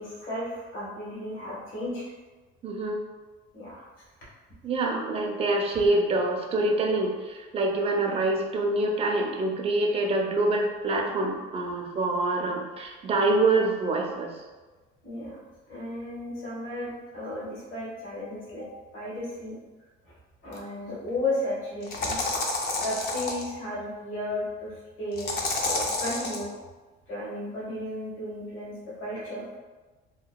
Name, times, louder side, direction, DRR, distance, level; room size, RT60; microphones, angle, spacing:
voice 1, 0.0-2.0 3.5-3.9 15.0-15.4 15.7-19.5 20.0-20.2 20.4-22.2 22.8-26.5 27.1-29.4, left 1 dB, 75° left, -7 dB, 1.3 m, -34 dB
voice 2, 2.6-3.0 4.6-14.4, right 2 dB, 30° right, 1 dB, 0.4 m, -26 dB
sound 1, 20.5-20.6 21.8-23.5 25.2-26.4, left 2 dB, 50° left, 0.5 m, -29 dB
2.7 x 2.2 x 2.2 m, 1.3 s
cardioid pair, 125°, 20 cm